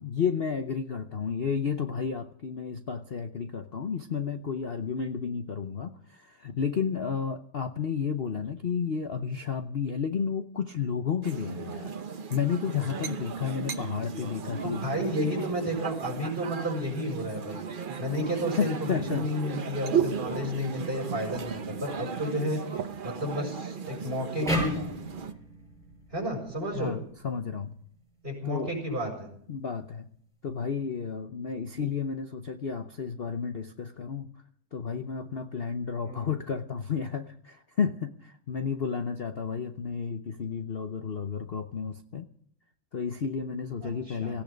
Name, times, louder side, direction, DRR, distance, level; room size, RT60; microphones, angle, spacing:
voice 1, 0.0-11.9 12.3-14.8 18.6-19.3 26.7-27.8 28.4-28.7 29.5-30.1 30.4-34.3 34.7-42.2 42.9-44.4, left 6 dB, 65° left, 8 dB, 0.5 m, -32 dB
sound 1, 11.2-25.3, right 5 dB, 55° right, 0.5 m, -37 dB
voice 2, 14.6-22.6 23.0-24.7 26.1-26.9 28.2-29.3 36.0-36.3 43.8-44.3, equal, 25° right, -4 dB, 6.4 m, -32 dB
sound 2, 17.8-20.9 21.2-21.7 22.1-22.2 22.5-23.2 23.9-24.6 25.2-25.4, right 8 dB, 80° right, 2.1 m, -33 dB
sound 3, 24.5-27.7, equal, ahead, 7.6 m, -34 dB
17.5 x 16.0 x 5.2 m, 0.64 s
omnidirectional pair, 2.2 m